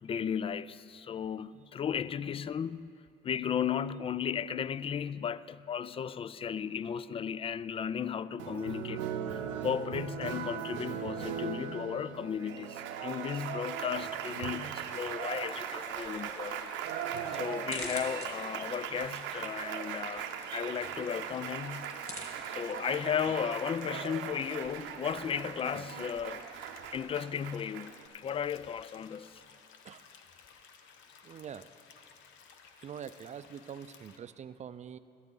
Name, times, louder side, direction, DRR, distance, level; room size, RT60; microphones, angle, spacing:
voice 1, 0.0-2.9 3.2-16.7 17.3-21.9 22.4-26.4 26.9-29.4, left 8 dB, 30° left, 0.3 m, -35 dB
Applause, 8.4-28.1, right 8 dB, 80° right, 0.7 m, -39 dB
sound 1, 14.7-34.2, left 6 dB, 75° left, 0.9 m, -57 dB
sound 2, 15.9-27.1, left 1 dB, 15° left, 2.9 m, -50 dB
voice 2, 31.2-31.7 32.8-35.0, right 8 dB, 35° right, 0.5 m, -44 dB
14.0 x 12.0 x 3.9 m
supercardioid pair, 70°, 19 cm